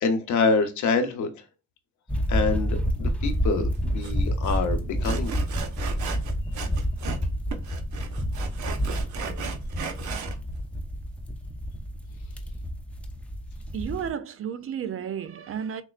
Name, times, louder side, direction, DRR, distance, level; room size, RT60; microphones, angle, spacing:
voice 1, 0.0-1.3 2.3-5.3, left 4 dB, 70° left, 0.9 m, -26 dB
sound 1, 2.1-14.1, equal, 5° left, 0.6 m, -29 dB
Sawing, 4.0-4.1 4.4-4.6 5.0-7.3 7.5-10.4, right 6 dB, 70° right, 0.8 m, -36 dB
voice 2, 13.7-15.8, right 8 dB, 50° right, 0.5 m, -32 dB
6.1 x 2.1 x 2.4 m
cardioid pair, 90°, 30 cm